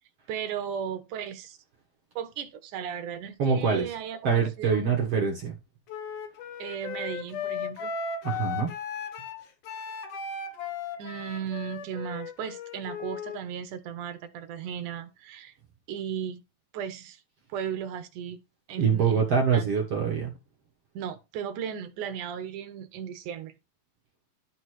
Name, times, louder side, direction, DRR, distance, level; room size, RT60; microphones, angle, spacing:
voice 1, 0.3-1.6 2.2-5.0 6.6-7.9 11.0-15.5 15.9-16.4 16.7-17.2 17.5-18.4 18.7-19.2 19.5-19.7 20.9-23.6, right 8 dB, 70° right, 2.2 m, -36 dB
voice 2, 3.4-3.9 4.2-5.5 8.2-8.7 18.8-20.3, right 6 dB, 50° right, 2.0 m, -24 dB
Wind instrument woodwind instrument, 5.9-13.4, left 6 dB, 65° left, 2.4 m, -36 dB
12.0 x 4.1 x 4.7 m
omnidirectional pair, 4.4 m